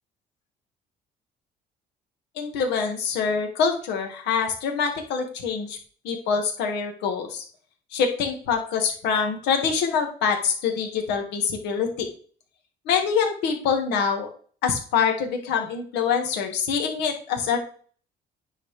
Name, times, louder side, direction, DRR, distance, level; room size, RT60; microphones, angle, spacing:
voice 1, 2.4-5.8 6.0-7.4 7.9-12.1 12.9-14.3 14.6-17.6, left 6 dB, 85° left, 3 dB, 2.2 m, -25 dB
9.7 x 4.3 x 5.1 m, 0.43 s
cardioid pair, 110°, 17 cm